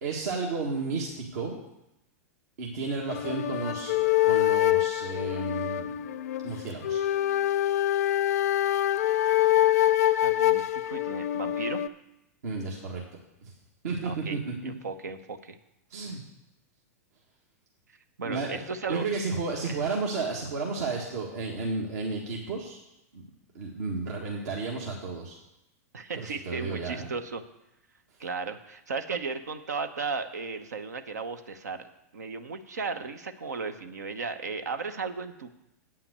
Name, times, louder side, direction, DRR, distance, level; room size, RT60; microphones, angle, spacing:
voice 1, 0.0-1.6 2.6-3.9 4.2-6.0 6.4-7.0 12.4-13.5 13.8-14.7 15.9-16.2 18.2-18.6 18.9-22.8 23.1-23.2 23.6-25.4 26.2-27.1, right 4 dB, 70° right, -2 dB, 1.8 m, -32 dB
sound 1, 3.1-11.9, left 13 dB, 70° left, 0.5 m, -25 dB
voice 2, 10.2-11.8 14.0-14.4 14.6-15.6 18.2-19.1 19.6-19.8 25.9-27.4 28.2-35.6, right 4 dB, 85° right, 8 dB, 0.9 m, -35 dB
8.9 x 5.8 x 8.0 m, 0.88 s
hypercardioid pair, 110°, 9 cm